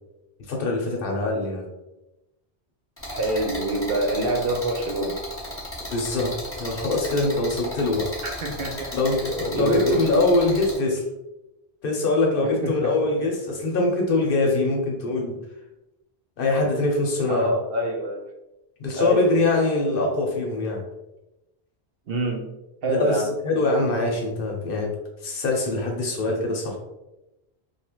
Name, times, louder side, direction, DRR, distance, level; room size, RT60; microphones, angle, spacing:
voice 1, 0.5-1.6 5.9-8.1 8.9-11.0 11.8-15.4 16.4-17.5 18.8-20.8 22.9-24.9 25.2-26.8, left 2 dB, 65° left, 0 dB, 0.8 m, -23 dB
sound 1, 3.0-10.8, left 1 dB, 15° left, 0.7 m, -35 dB
voice 2, 3.1-5.2 8.2-9.0 9.5-10.2 12.4-12.7 17.3-18.2 19.0-19.4 22.1-22.5 22.8-23.3, right 1 dB, 70° right, 2 dB, 0.7 m, -25 dB
2.7 x 2.3 x 2.9 m, 0.95 s
omnidirectional pair, 1.1 m